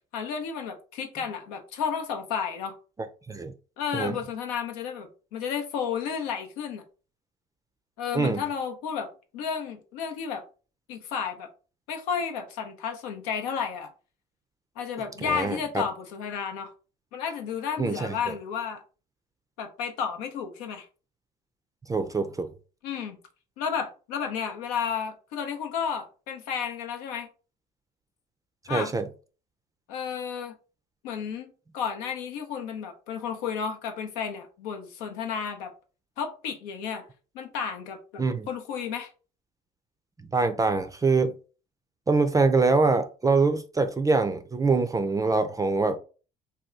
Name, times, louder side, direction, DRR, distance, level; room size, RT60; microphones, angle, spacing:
voice 1, 0.1-2.8 3.8-6.8 8.0-10.4 10.9-11.5 11.9-13.9 14.8-16.7 17.1-18.8 19.6-20.9 22.8-23.2 23.6-27.3 28.7-28.9 29.9-30.5 31.0-35.7 36.2-37.1 37.3-39.1, left 7 dB, 90° left, 0.7 m, -32 dB
voice 2, 15.2-15.8 17.8-18.3 21.9-22.5 28.7-29.0 38.2-38.5 40.2-41.3 42.1-46.0, right 3 dB, 20° right, 0.4 m, -24 dB
2.7 x 2.2 x 3.6 m
supercardioid pair, 75°, 19 cm